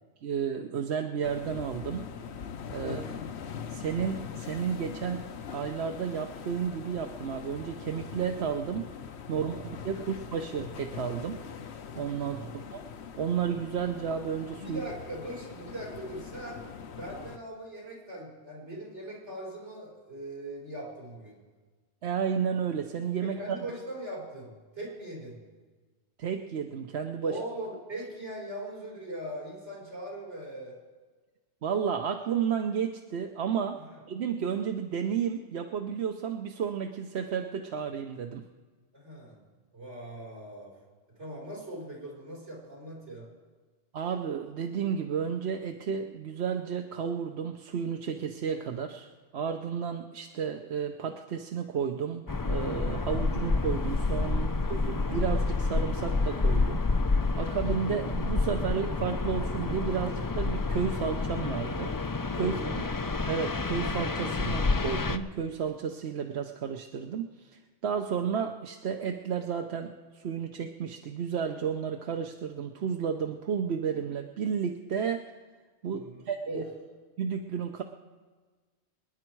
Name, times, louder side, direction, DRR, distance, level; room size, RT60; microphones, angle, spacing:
voice 1, 0.2-2.1 2.7-3.0 3.7-5.3 5.5-8.9 9.3-11.4 12.0-12.8 13.2-14.8 22.0-23.4 26.2-27.4 31.6-33.8 34.1-38.4 43.9-56.8 57.4-61.9 62.4-62.5 63.3-75.3 75.8-76.6 77.2-77.8, right 7 dB, 70° right, 4 dB, 1.0 m, -32 dB
sound 1, 1.2-17.4, left 7 dB, 70° left, 1.1 m, -42 dB
voice 2, 2.8-3.2 9.3-9.7 9.9-10.1 12.2-12.5 14.6-16.6 17.0-21.4 23.2-25.4 27.2-30.8 33.8-34.0 38.9-39.4 39.7-40.7 41.2-43.3 62.3-62.8 75.9-76.7, right 1 dB, 85° right, -4 dB, 4.8 m, -40 dB
sound 2, 52.3-65.2, left 3 dB, 30° left, 0.3 m, -29 dB
26.0 x 9.9 x 4.6 m, 1.4 s
omnidirectional pair, 1.2 m